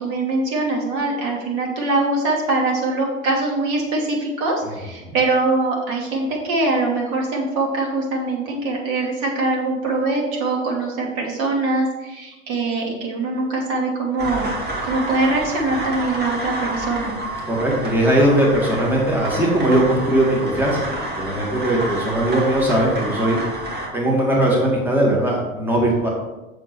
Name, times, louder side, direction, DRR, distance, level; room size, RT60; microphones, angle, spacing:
voice 1, 0.0-17.1, right 2 dB, 45° right, -1 dB, 2.8 m, -23 dB
sound 1, 14.2-23.9, right 1 dB, 25° right, 2.5 m, -29 dB
voice 2, 17.5-20.9 21.2-23.4 23.9-26.1, right 1 dB, 5° right, -3 dB, 2.1 m, -19 dB
7.5 x 6.7 x 4.6 m, 1.1 s
figure-of-eight pair, 85°, 40 cm